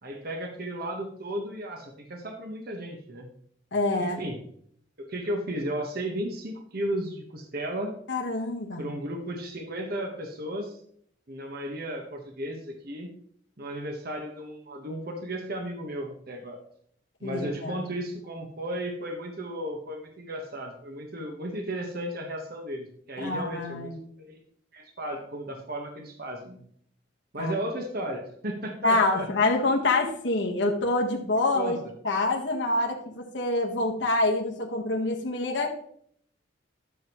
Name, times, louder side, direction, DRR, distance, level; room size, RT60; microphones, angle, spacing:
voice 1, 0.0-3.3 4.0-4.4 5.0-7.9 8.8-10.8 11.3-13.1 13.6-16.6 17.2-23.9 24.2-24.4 24.7-26.6 27.3-29.3 31.5-31.8, right 1 dB, 55° right, 3 dB, 1.3 m, -34 dB
voice 2, 3.7-4.2 8.1-8.9 17.2-17.8 23.2-24.0 27.4-27.5 28.8-31.8 32.0-35.7, left 2 dB, 75° left, 0 dB, 1.4 m, -26 dB
11.5 x 7.2 x 3.1 m, 0.63 s
head